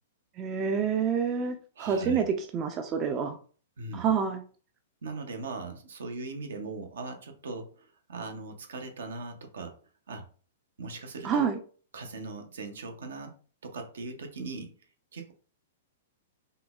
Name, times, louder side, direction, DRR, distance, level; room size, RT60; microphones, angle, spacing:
voice 1, 0.4-3.4 3.9-4.4 11.2-11.6, right 6 dB, 30° right, 7 dB, 0.4 m, -28 dB
voice 2, 1.8-2.2 3.8-4.1 5.0-9.7 10.1-10.3 10.8-11.5 11.9-13.3 13.6-14.8 15.1-15.3, right 3 dB, 75° right, 5 dB, 0.6 m, -39 dB
3.7 x 2.0 x 2.3 m, 0.40 s
hypercardioid pair, 110°, 0 cm